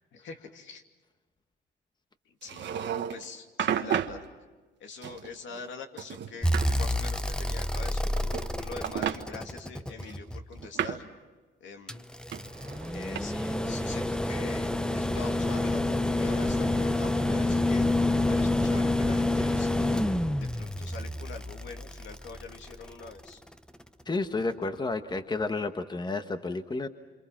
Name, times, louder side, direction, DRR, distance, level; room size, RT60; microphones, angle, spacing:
voice 1, 0.1-0.8 2.3-4.3 4.8-11.0 11.6-12.0 12.9-17.8 18.3-23.4, left 4 dB, 70° left, 4 dB, 2.7 m, -44 dB
sound 1, 2.4-3.2 3.6-4.2 5.0-5.7 6.0-6.7 7.9-8.5 8.8-9.2 10.0-11.1 12.3-13.2, right 9 dB, 65° right, 1.5 m, -32 dB
sound 2, 6.4-10.6 11.9-23.1 24.6-24.7, left 1 dB, 5° left, 0.9 m, -28 dB
voice 2, 24.1-26.9, left 3 dB, 20° left, 8 dB, 1.3 m, -31 dB
27.5 x 27.0 x 6.0 m, 1.3 s
cardioid pair, 90°, 20 cm